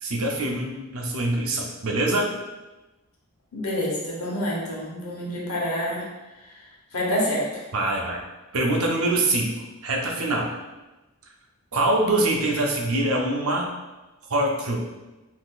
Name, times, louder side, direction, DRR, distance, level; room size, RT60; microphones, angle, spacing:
voice 1, 0.0-2.4 7.7-8.2 8.5-9.5 9.8-10.5 11.7-13.7 14.3-14.8, right 2 dB, 75° right, 0 dB, 0.6 m, -24 dB
voice 2, 3.5-6.1 6.9-7.6, equal, 90° left, -3 dB, 1.0 m, -27 dB
3.7 x 2.7 x 2.4 m, 1.1 s
head